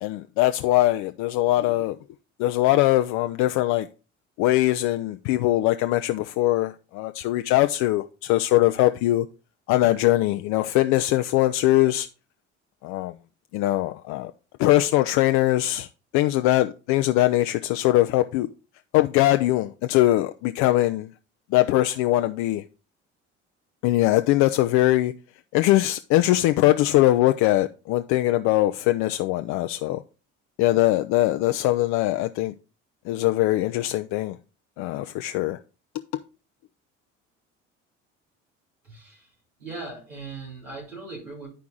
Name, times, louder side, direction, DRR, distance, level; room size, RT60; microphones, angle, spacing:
voice 1, 0.0-2.0 2.4-3.9 4.4-9.3 9.7-12.1 12.8-13.1 13.5-14.3 14.6-15.9 16.1-18.5 18.9-21.1 21.5-22.6 23.8-25.1 25.5-30.0 30.6-32.5 33.1-34.4 34.8-35.6, left 16 dB, 50° left, 0.5 m, -21 dB
voice 2, 38.8-41.5, right 3 dB, 85° right, 3.7 m, -39 dB
11.5 x 4.7 x 3.8 m
figure-of-eight pair, 55°, 37 cm